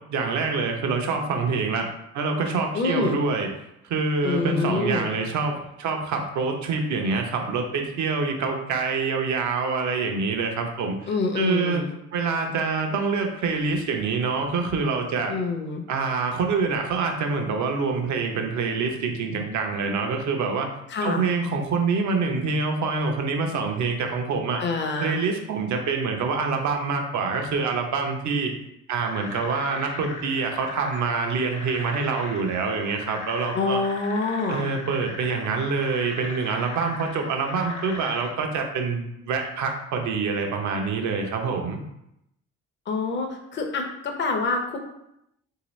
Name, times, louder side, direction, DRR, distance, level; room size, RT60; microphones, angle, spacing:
voice 1, 0.1-1.9 2.1-3.5 3.9-11.8 12.1-15.3 15.9-20.7 21.0-24.6 25.0-28.5 28.9-33.8 34.5-41.8, right 4 dB, 70° right, 3 dB, 0.7 m, -26 dB
voice 2, 2.7-3.2 4.2-5.1 11.1-11.9 15.3-15.8 20.9-21.3 24.6-25.2 33.5-34.7 42.9-44.8, left 3 dB, 40° left, 3 dB, 0.6 m, -26 dB
sound 1, 29.0-38.3, left 3 dB, 70° left, 0.8 m, -39 dB
3.3 x 2.8 x 3.1 m, 0.83 s
cardioid pair, 90°, 30 cm